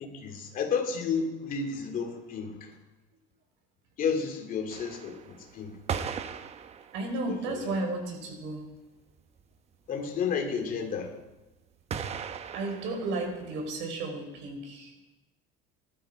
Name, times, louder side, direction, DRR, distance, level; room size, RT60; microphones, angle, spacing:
voice 1, 0.1-2.7 4.0-6.2 7.3-7.8 9.9-11.2, left 6 dB, 45° left, 3 dB, 2.8 m, -32 dB
sound 1, 4.7-7.5 8.1-8.2 8.4-8.5 8.8-8.9 9.1-9.6 11.9-13.8, right 7 dB, 30° right, 0.9 m, -38 dB
voice 2, 6.9-8.6 12.5-14.9, right 2 dB, 65° right, 2 dB, 5.2 m, -33 dB
19.5 x 12.5 x 5.1 m, 1.0 s
cardioid pair, 140°, 20 cm